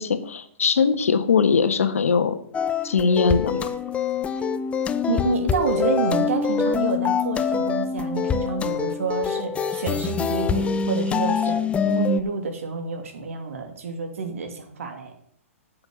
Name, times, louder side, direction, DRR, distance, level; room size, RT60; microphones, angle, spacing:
voice 1, 0.0-2.4 2.8-3.7, left 5 dB, 75° left, 10 dB, 1.4 m, -21 dB
sound 1, 2.5-12.2, left 6 dB, 15° left, 0.7 m, -25 dB
voice 2, 5.1-15.1, right 5 dB, 70° right, 5 dB, 2.8 m, -28 dB
9.0 x 7.8 x 7.8 m, 0.66 s
hypercardioid pair, 120°, 8 cm